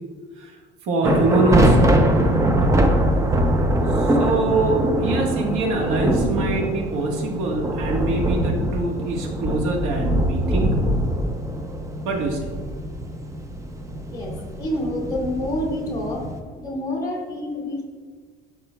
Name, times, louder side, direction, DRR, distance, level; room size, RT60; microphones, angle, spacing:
voice 1, 0.8-2.0 3.9-10.8 12.0-12.5, right 2 dB, 80° right, 1 dB, 1.4 m, -24 dB
sound 1, 1.0-16.4, right 1 dB, 15° right, 0.6 m, -22 dB
voice 2, 14.6-16.2 16.5-17.8, left 1 dB, 20° left, -2 dB, 1.9 m, -27 dB
12.0 x 5.7 x 2.2 m, 1.5 s
cardioid pair, 140°, 21 cm